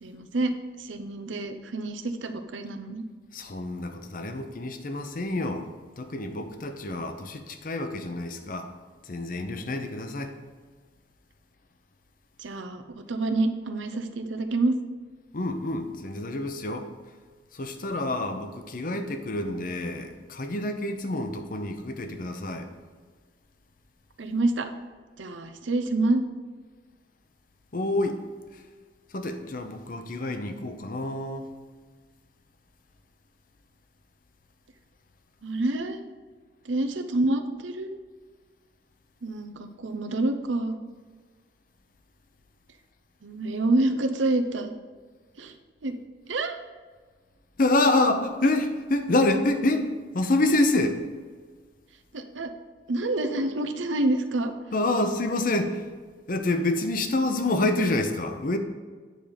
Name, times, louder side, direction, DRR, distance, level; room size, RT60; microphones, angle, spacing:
voice 1, 0.0-3.0 12.4-14.7 24.2-24.7 25.2-26.2 35.4-36.1 36.6-38.0 39.2-40.8 43.2-44.7 45.4-45.6 45.8-46.0 46.3-46.6 52.1-52.5 52.9-54.5, right 2 dB, 85° right, 7 dB, 0.7 m, -27 dB
voice 2, 3.3-5.7 6.0-8.7 9.0-10.3 15.3-16.9 17.5-22.7 27.7-28.2 28.5-28.6 29.1-31.5 47.6-51.0 54.7-55.8 56.3-58.6, left 2 dB, 45° left, 7 dB, 0.7 m, -27 dB
9.1 x 4.5 x 5.1 m, 1.5 s
head